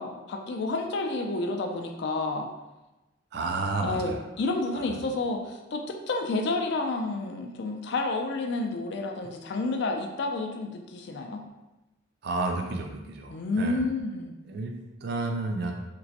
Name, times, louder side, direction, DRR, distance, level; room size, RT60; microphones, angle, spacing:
voice 1, 0.0-2.5 3.8-11.4 13.3-14.3, left 2 dB, 55° left, 3 dB, 0.4 m, -30 dB
voice 2, 3.3-4.2 4.7-5.0 12.2-13.8 14.5-14.7 15.0-15.7, right 3 dB, 55° right, 3 dB, 0.4 m, -31 dB
3.3 x 3.0 x 2.6 m, 1.0 s
head